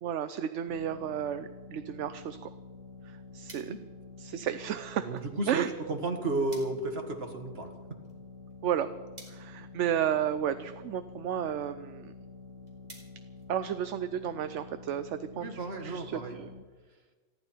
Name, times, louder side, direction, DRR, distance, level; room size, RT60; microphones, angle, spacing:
voice 1, 0.0-2.5 3.0-3.7 4.2-5.2 5.5-5.7 8.6-8.9 9.3-12.1 13.5-16.5, right 9 dB, 70° right, 10 dB, 1.0 m, -33 dB
sound 1, 0.7-16.6, left 4 dB, 75° left, 2.1 m, -48 dB
sound 2, 3.5-14.2, right 1 dB, 30° right, 4.1 m, -58 dB
voice 2, 5.0-7.7 15.4-16.4, right 2 dB, 50° right, 3 dB, 2.1 m, -33 dB
29.0 x 11.0 x 4.5 m, 1.3 s
omnidirectional pair, 1.3 m